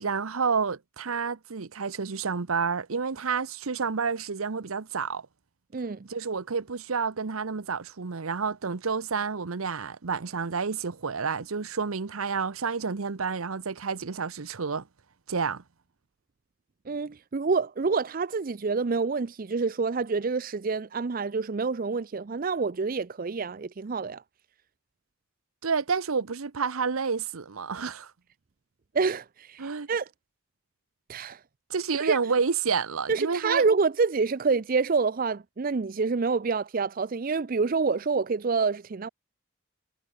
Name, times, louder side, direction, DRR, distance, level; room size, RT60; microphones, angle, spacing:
voice 1, 0.0-5.3 6.0-14.8 15.3-15.6 25.6-28.1 29.6-29.9 31.7-33.7, right 5 dB, 90° right, 0.9 m, -29 dB
voice 2, 16.9-24.2 28.9-30.1 31.1-31.4 32.0-32.2 33.1-39.1, right 4 dB, 45° right, 0.5 m, -27 dB
head